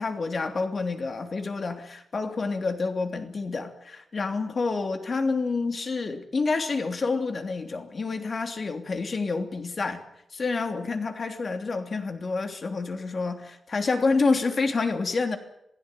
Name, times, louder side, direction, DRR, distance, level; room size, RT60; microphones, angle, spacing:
voice 1, 0.0-10.0 10.3-15.4, left 4 dB, 45° left, 6 dB, 3.2 m, -28 dB
28.5 x 16.5 x 9.1 m, 0.78 s
wide cardioid pair, 115°, 0 cm